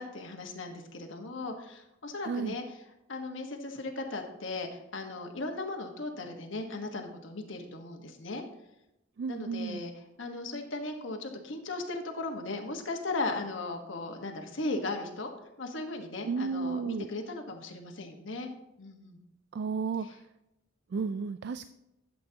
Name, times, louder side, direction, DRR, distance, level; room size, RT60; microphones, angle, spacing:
voice 1, 0.0-2.6 3.1-8.4 9.3-9.9 10.2-15.3 15.6-18.5 18.8-19.2 20.0-20.2, left 2 dB, 70° left, 3 dB, 1.4 m, -37 dB
voice 2, 2.2-2.6 9.2-9.8 16.3-17.1 19.5-20.1 20.9-21.7, right 5 dB, 60° right, 12 dB, 0.3 m, -32 dB
12.0 x 7.7 x 2.9 m, 0.91 s
head